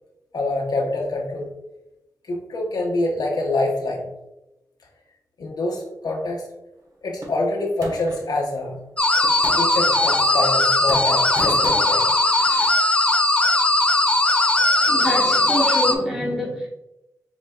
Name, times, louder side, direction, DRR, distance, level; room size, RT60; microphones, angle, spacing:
voice 1, 0.3-1.5 2.3-4.1 5.4-6.5 7.0-8.8 9.5-12.2, left 2 dB, 80° left, -1 dB, 0.9 m, -25 dB
sound 1, 7.2-8.3 9.2-10.6 10.9-12.7, right 1 dB, 60° right, 1.1 m, -36 dB
sound 2, 9.0-15.9, left 2 dB, 15° left, 0.4 m, -19 dB
voice 2, 14.8-16.7, equal, 5° right, -4 dB, 1.2 m, -26 dB
4.6 x 4.2 x 2.3 m, 0.93 s
wide cardioid pair, 120°, 7 cm